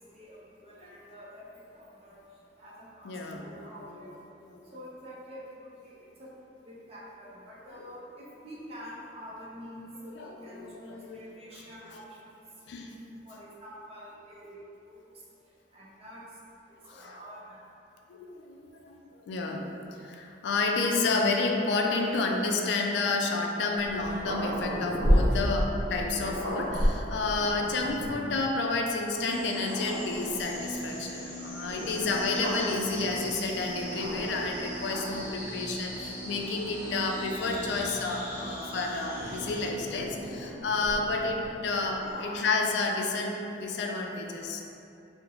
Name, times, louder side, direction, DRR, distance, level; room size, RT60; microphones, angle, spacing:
voice 1, 0.1-2.2 2.6-3.1 3.4-4.1 4.7-6.3 6.6-12.3 12.9-15.0 15.7-16.2 16.9-17.6 42.0-42.4, equal, 35° right, -6 dB, 0.6 m, -47 dB
voice 2, 3.0-3.4 4.5-4.6 10.2-11.2 12.7-12.9 16.8-17.2 18.1-19.7 20.0-44.6, left 3 dB, 75° left, 1 dB, 0.3 m, -30 dB
Growling, 23.8-28.4 29.0-29.1 29.5-30.6 31.7-34.5 34.8-35.3 36.2-38.0 39.2-41.7, equal, 80° right, 0.6 m, -32 dB
sound 1, 29.2-39.7, right 1 dB, 15° right, 1.2 m, -39 dB
3.7 x 2.0 x 3.0 m, 2.7 s
head